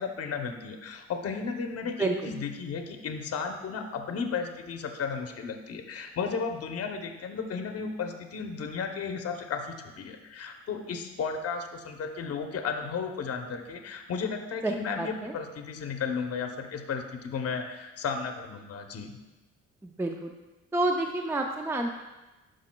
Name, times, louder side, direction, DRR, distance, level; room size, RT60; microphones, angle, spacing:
voice 1, 0.0-19.2, left 5 dB, 50° left, 4 dB, 0.8 m, -34 dB
voice 2, 14.6-15.3 19.8-20.3 20.7-21.9, right 2 dB, 10° right, 3 dB, 0.5 m, -29 dB
11.5 x 5.0 x 2.2 m, 1.1 s
cardioid pair, 90°, 30 cm